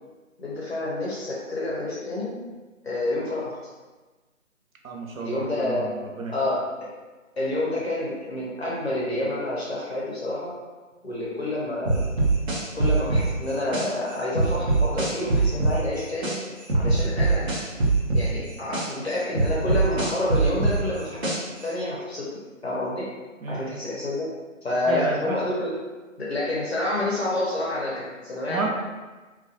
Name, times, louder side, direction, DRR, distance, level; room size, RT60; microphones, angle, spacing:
voice 1, 0.4-2.4 2.8-3.6 5.2-5.9 6.3-6.7 7.4-10.5 11.0-12.0 12.7-16.3 16.7-17.5 18.1-21.3 21.6-22.3 22.6-23.1 23.5-24.3 24.6-25.7 26.2-28.7, left 1 dB, 50° left, -5 dB, 0.6 m, -28 dB
voice 2, 4.8-6.3 23.4-23.7 24.9-25.4 28.5-28.7, right 3 dB, 85° right, 0 dB, 0.6 m, -31 dB
sound 1, 11.9-13.9 14.4-16.4 16.7-18.9 19.4-21.6, right 2 dB, 50° right, 0.8 m, -22 dB
2.4 x 2.2 x 2.6 m, 1.3 s
figure-of-eight pair, 150°, 40 cm